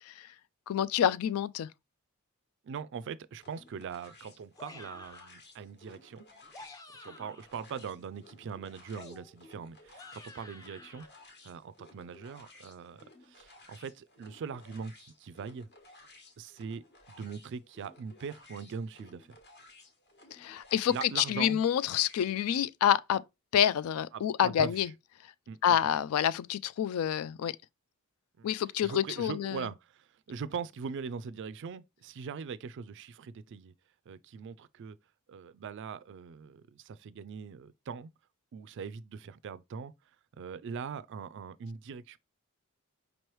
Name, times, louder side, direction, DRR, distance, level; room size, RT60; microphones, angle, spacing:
voice 1, 0.7-1.7 20.3-23.2 23.5-24.9 25.6-27.5 28.4-29.7, left 9 dB, 75° left, 0.3 m, -28 dB
voice 2, 2.6-6.3 7.0-11.1 11.4-15.7 16.4-19.4 20.9-21.6 24.1-24.8 25.5-25.8 28.4-28.5 28.8-33.7 34.1-35.0 35.3-38.1 38.5-39.9 40.4-42.2, right 6 dB, 55° right, 0.3 m, -41 dB
sound 1, 3.4-22.4, left 2 dB, 50° left, 1.2 m, -57 dB
sound 2, 4.6-5.4 6.3-7.5 8.9-11.1, left 2 dB, 15° left, 0.5 m, -51 dB
5.2 x 3.1 x 3.1 m
head